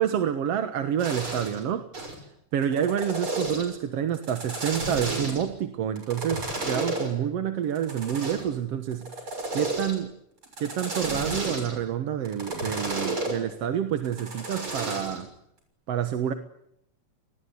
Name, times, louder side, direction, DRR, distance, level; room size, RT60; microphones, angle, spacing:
voice 1, 0.0-2.2 2.5-10.1 10.6-15.3 15.9-16.3, right 9 dB, 60° right, 8 dB, 2.2 m, -28 dB
sound 1, 1.0-1.6 1.9-2.2 2.6-3.7 4.1-5.5 6.0-7.1 7.8-8.5 8.9-10.0 10.4-11.8 12.3-13.4 14.0-15.2, right 2 dB, 45° right, 7.4 m, -32 dB
28.5 x 20.5 x 9.5 m, 0.78 s
omnidirectional pair, 3.4 m